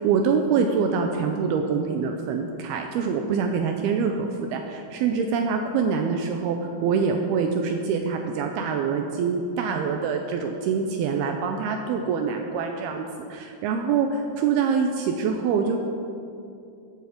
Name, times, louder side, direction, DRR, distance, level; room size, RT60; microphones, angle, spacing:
voice 1, 0.0-13.1 13.3-15.8, right 6 dB, 85° right, 4 dB, 2.2 m, -25 dB
14.5 x 9.3 x 5.1 m, 2.6 s
omnidirectional pair, 5.2 m